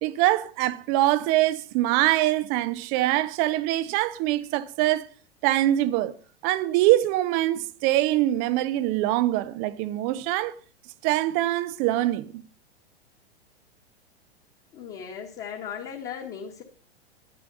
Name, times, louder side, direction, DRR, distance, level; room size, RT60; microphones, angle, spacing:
voice 1, 0.0-5.1 5.4-6.1 6.4-10.5 11.0-12.4, right 15 dB, 25° right, 0.6 m, -23 dB
voice 2, 14.7-16.6, left 8 dB, 30° left, 1.7 m, -37 dB
11.0 x 10.5 x 5.4 m
figure-of-eight pair, 100°, 32 cm